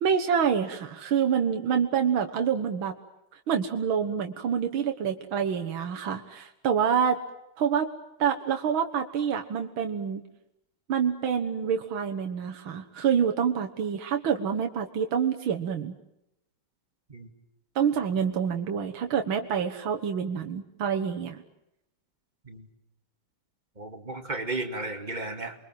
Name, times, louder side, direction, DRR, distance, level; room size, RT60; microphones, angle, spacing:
voice 1, 0.0-2.9 3.5-7.2 7.6-7.9 8.2-10.2 10.9-15.9 17.8-21.4, right 7 dB, 80° right, 4 dB, 2.2 m, -27 dB
voice 2, 23.8-25.5, right 2 dB, 20° right, 6 dB, 2.5 m, -34 dB
29.0 x 23.5 x 7.7 m, 0.86 s
omnidirectional pair, 2.2 m